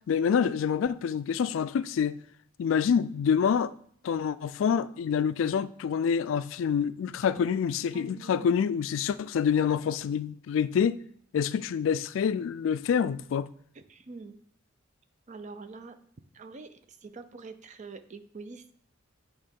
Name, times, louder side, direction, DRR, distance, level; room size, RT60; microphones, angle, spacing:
voice 1, 0.1-2.2 2.6-3.7 4.0-11.0 11.3-13.5, left 7 dB, 70° left, 0.3 m, -27 dB
voice 2, 7.9-8.5 13.7-14.4 15.3-16.0 16.3-18.8, right 4 dB, 35° right, 0.5 m, -45 dB
8.6 x 3.0 x 5.3 m
head